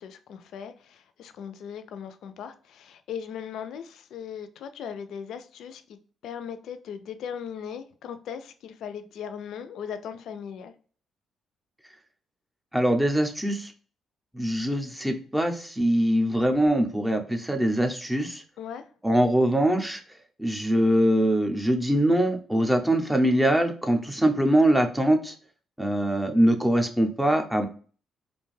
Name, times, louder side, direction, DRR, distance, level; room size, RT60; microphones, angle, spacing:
voice 1, 0.0-5.8 6.2-10.7 18.6-18.9, left 8 dB, 75° left, 0.3 m, -38 dB
voice 2, 12.7-13.7 14.3-18.4 19.0-20.0 20.4-25.3 25.8-27.7, right 1 dB, 5° right, 0.5 m, -23 dB
2.5 x 2.2 x 3.1 m
cardioid pair, 90°, 0 cm